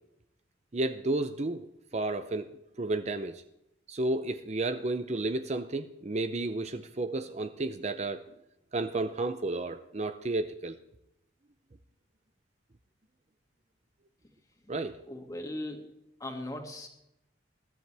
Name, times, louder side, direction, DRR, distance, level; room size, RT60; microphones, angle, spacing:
voice 1, 0.7-2.5 2.8-3.4 3.9-8.3 8.7-10.8 14.7-15.0, right 2 dB, 35° right, 9 dB, 0.6 m, -32 dB
voice 2, 15.1-15.9 16.2-16.9, left 1 dB, 20° left, 2 dB, 2.1 m, -38 dB
21.0 x 13.5 x 3.4 m, 0.84 s
head